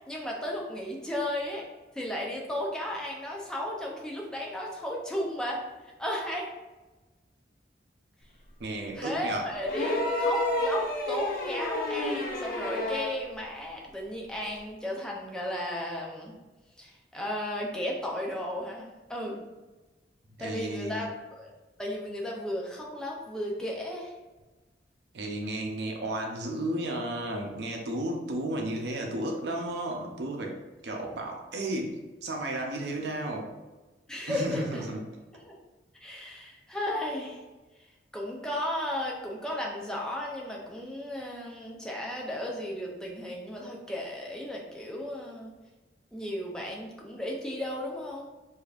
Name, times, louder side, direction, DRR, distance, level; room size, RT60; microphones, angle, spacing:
voice 1, 0.1-1.7 1.9-5.6 6.0-6.5 8.9-16.3 16.8-19.4 20.4-21.5 21.8-24.1 34.1-34.8 35.3-35.5 35.9-37.4 38.1-45.5 46.1-48.3, left 1 dB, 5° left, -2 dB, 0.5 m, -34 dB
voice 2, 8.6-9.5 20.4-21.1 25.1-30.6 30.8-33.5 34.3-35.0, right 1 dB, 70° right, 1 dB, 0.6 m, -33 dB
sound 1, 9.7-13.2 14.6-14.7, left 1 dB, 50° left, 0.6 m, -29 dB
4.9 x 2.7 x 2.4 m, 1.2 s
head